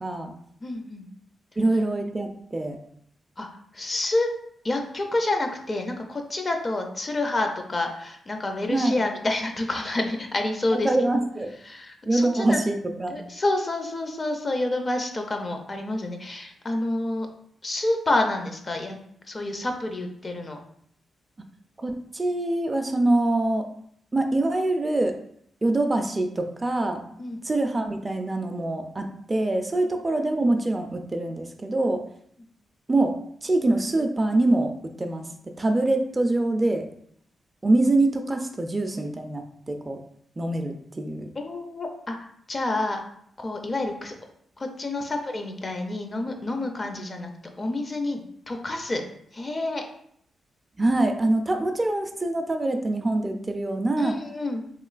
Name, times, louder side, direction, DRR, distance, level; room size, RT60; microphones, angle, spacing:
voice 1, 0.0-0.3 1.6-2.8 8.7-8.9 10.7-11.5 12.0-13.2 21.8-23.7 24.1-25.2 25.6-27.0 27.4-32.0 32.9-36.9 37.6-40.0 40.4-41.3 50.8-54.2, right 2 dB, 25° right, 5 dB, 0.3 m, -24 dB
voice 2, 0.6-1.1 3.4-3.5 3.7-4.3 4.6-10.9 11.7-12.6 13.1-17.3 17.6-19.0 19.3-20.6 27.2-27.4 29.7-29.9 41.4-42.2 42.5-43.0 43.4-44.1 44.6-47.3 47.6-48.2 48.5-49.0 49.3-49.8 54.0-54.6, left 2 dB, 35° left, 4 dB, 0.5 m, -28 dB
3.0 x 3.0 x 2.4 m, 0.67 s
cardioid pair, 85°, 0 cm